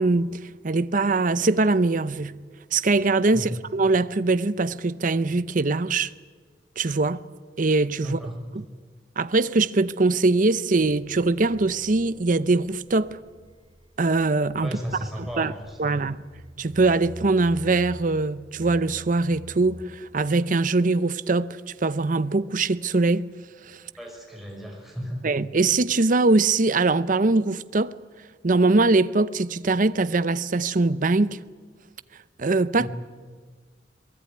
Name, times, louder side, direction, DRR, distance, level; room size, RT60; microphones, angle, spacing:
voice 1, 0.0-2.4 2.7-6.1 6.8-7.2 7.6-8.2 8.5-8.6 9.2-13.2 14.0-14.7 15.4-15.5 15.8-16.2 16.6-23.3 23.7-23.8 25.2-28.0 28.4-31.4 32.4-32.9, right 3 dB, 45° right, 0.7 m, -22 dB
voice 2, 8.0-8.3 14.6-16.0 24.0-25.2 32.8-32.9, equal, ahead, 6.2 m, -34 dB
sound 1, 10.7-19.9, equal, 30° right, 2.4 m, -46 dB
22.5 x 20.5 x 9.6 m
head